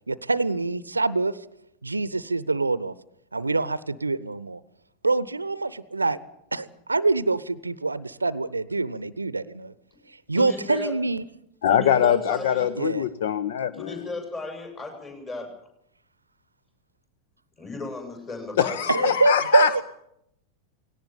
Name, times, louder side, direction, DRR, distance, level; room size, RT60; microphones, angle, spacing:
voice 1, 0.1-1.4 1.8-2.9 3.3-4.6 5.0-6.2 6.5-9.7 10.3-11.2 12.8-13.0 18.9-19.8, right 3 dB, 80° right, 19 dB, 0.7 m, -25 dB
voice 2, 10.3-10.9 11.7-12.7 13.8-15.5 17.6-19.1, left 2 dB, 25° left, 3 dB, 7.4 m, -35 dB
voice 3, 11.6-14.0 18.6-19.8, left 9 dB, 55° left, 14 dB, 0.8 m, -23 dB
18.5 x 17.5 x 8.7 m, 0.77 s
figure-of-eight pair, 90°, 0 cm